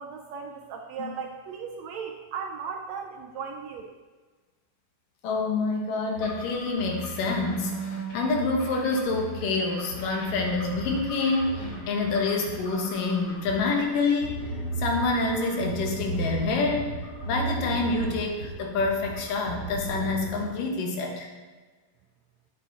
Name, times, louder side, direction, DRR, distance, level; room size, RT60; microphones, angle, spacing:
voice 1, 0.0-3.9, right 6 dB, 80° right, 3 dB, 1.6 m, -37 dB
voice 2, 5.2-14.5 14.8-16.9 17.2-21.3, left 3 dB, 80° left, 1 dB, 2.9 m, -27 dB
sound 1, 6.1-20.5, right 2 dB, 30° left, 2.2 m, -36 dB
8.6 x 8.4 x 4.1 m, 1.4 s
omnidirectional pair, 3.8 m